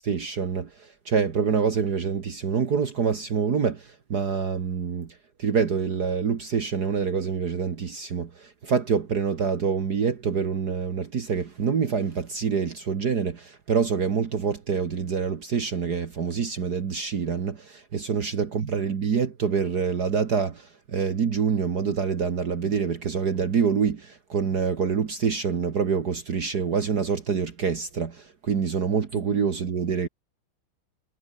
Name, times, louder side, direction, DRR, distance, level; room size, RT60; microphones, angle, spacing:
voice 1, 0.1-0.7 1.1-5.1 5.4-30.1, right 6 dB, 50° right, 2.1 m, -26 dB
omnidirectional pair, 2.3 m